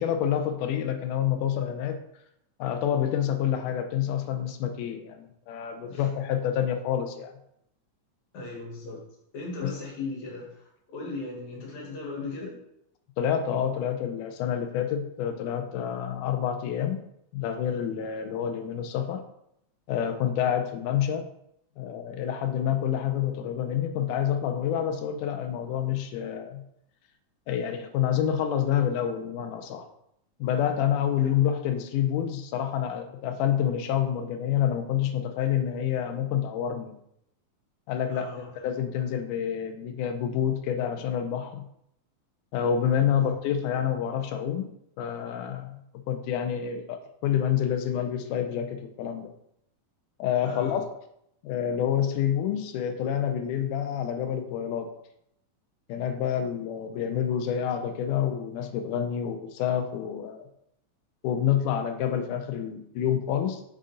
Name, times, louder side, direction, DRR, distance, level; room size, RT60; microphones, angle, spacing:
voice 1, 0.0-2.0 2.6-7.3 9.6-9.7 13.2-17.0 17.3-19.2 19.9-21.3 21.8-26.6 27.5-29.9 30.4-37.0 37.9-38.3 38.6-41.6 42.5-44.7 45.0-45.8 46.1-49.3 50.2-50.8 51.4-54.9 55.9-60.5 61.2-63.6, left 9 dB, 90° left, 7 dB, 2.2 m, -28 dB
voice 2, 8.3-9.0 9.3-12.5 31.2-31.3 38.1-38.5 43.0-43.3 50.4-50.8, left 3 dB, 65° left, -2 dB, 2.8 m, -37 dB
6.6 x 3.7 x 3.9 m, 0.76 s
omnidirectional pair, 3.5 m